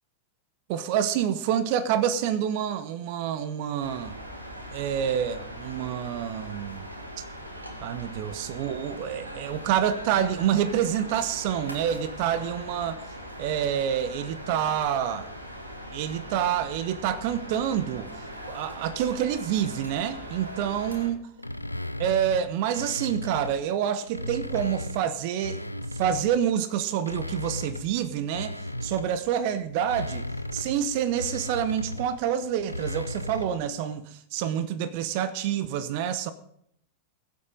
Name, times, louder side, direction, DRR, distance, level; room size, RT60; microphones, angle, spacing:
voice 1, 0.7-4.1 4.7-6.8 7.2-7.3 7.8-13.0 13.4-15.3 15.9-21.2 22.0-25.6 25.9-30.2 30.5-36.3, right 9 dB, 45° right, 0.9 m, -27 dB
sound 1, 3.8-21.1, equal, 80° right, 2.0 m, -40 dB
sound 2, 21.4-23.6 24.0-26.4 26.9-33.7, left 1 dB, 90° left, 0.6 m, -36 dB
21.5 x 7.7 x 3.9 m
figure-of-eight pair, 90°, 0 cm